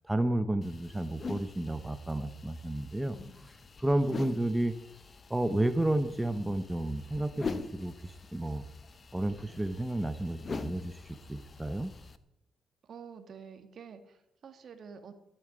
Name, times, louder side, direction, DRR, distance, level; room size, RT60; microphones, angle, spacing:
voice 1, 0.0-3.2 3.5-4.7 5.3-8.6 9.1-11.0 11.3-11.9, right 1 dB, 10° right, 9 dB, 1.0 m, -31 dB
sound 1, 0.6-12.2, left 5 dB, 40° left, 1.1 m, -44 dB
voice 2, 12.8-15.1, right 6 dB, 55° right, 8 dB, 2.1 m, -48 dB
13.0 x 8.9 x 9.0 m, 0.85 s
cardioid pair, 90°, 0 cm